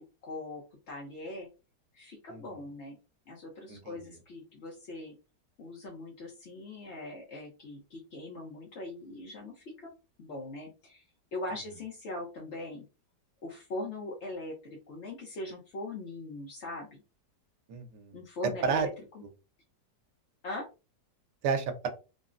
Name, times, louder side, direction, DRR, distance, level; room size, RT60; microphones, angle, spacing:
voice 1, 0.2-1.5 1.9-3.0 3.3-5.1 5.6-9.9 10.2-11.0 11.3-12.8 13.4-17.0 18.1-18.9 20.4-20.6, left 2 dB, 60° left, -1 dB, 0.7 m, -41 dB
voice 2, 3.7-4.0 17.7-18.2 18.4-18.9 21.4-21.9, right 5 dB, 80° right, 6 dB, 1.2 m, -31 dB
3.5 x 2.0 x 2.4 m, 0.30 s
omnidirectional pair, 1.9 m